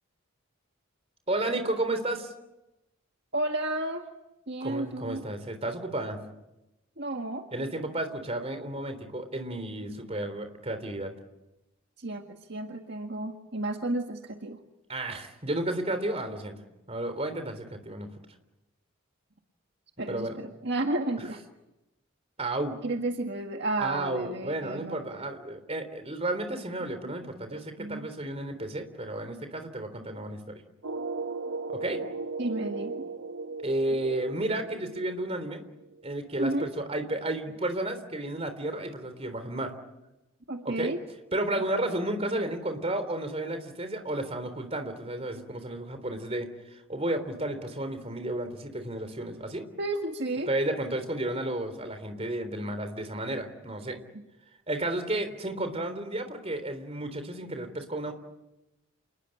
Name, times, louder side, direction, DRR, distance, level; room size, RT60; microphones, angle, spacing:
voice 1, 1.3-2.3 4.6-6.2 7.5-11.1 14.9-16.5 16.9-18.1 20.1-20.4 22.4-22.8 23.8-30.6 31.7-32.0 33.6-35.6 36.0-39.7 40.6-40.9 41.3-49.7 50.5-54.0 54.7-58.1, right 1 dB, 30° right, 9 dB, 3.6 m, -32 dB
voice 2, 3.3-4.1 4.5-5.2 7.0-7.5 12.0-14.6 20.0-21.4 22.8-25.0 27.1-27.2 27.5-28.1 32.4-33.1 36.4-36.7 40.5-41.0 45.4-45.5 49.8-50.5, right 2 dB, 55° right, 3 dB, 1.8 m, -32 dB
sound 1, 30.8-36.4, right 4 dB, 75° right, 0.9 m, -37 dB
28.5 x 21.0 x 9.9 m, 0.95 s
head